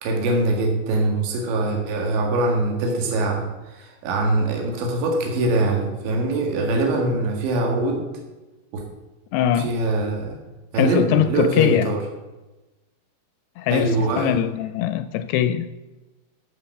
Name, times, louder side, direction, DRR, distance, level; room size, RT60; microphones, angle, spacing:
voice 1, 0.0-3.5 3.7-8.1 8.7-8.8 9.6-10.4 10.7-12.0 13.7-14.3, right 2 dB, 80° right, 1 dB, 4.1 m, -23 dB
voice 2, 9.3-9.7 10.8-11.9 13.6-15.7, left 10 dB, 85° left, 12 dB, 2.4 m, -22 dB
14.0 x 6.5 x 7.1 m, 1.1 s
omnidirectional pair, 5.0 m